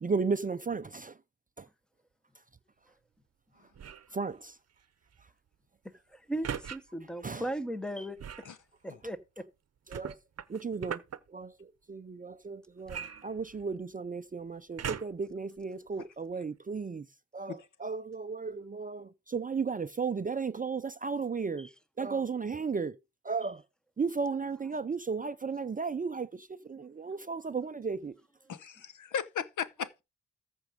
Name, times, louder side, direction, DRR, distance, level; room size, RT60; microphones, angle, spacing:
voice 1, 0.0-1.1 4.1-4.5 7.2-7.4 9.9-10.2 10.5-11.0 11.3-11.5 11.9-17.0 17.3-21.7 22.0-23.0 23.2-23.6 24.0-28.1, right 5 dB, 25° right, 0.5 m, -34 dB
sound 1, 3.7-4.1 6.4-6.8 8.2-8.5 9.9-11.2 12.9-13.8 14.8-15.3 16.0-16.1, right 8 dB, 50° right, 0.9 m, -39 dB
voice 2, 6.1-8.2 8.8-9.4 21.6-21.7 27.1-27.2 27.5-27.6, right 1 dB, ahead, 1.0 m, -37 dB
voice 3, 28.5-30.0, left 7 dB, 65° left, 1.0 m, -36 dB
14.0 x 5.2 x 5.1 m
wide cardioid pair, 110°, 33 cm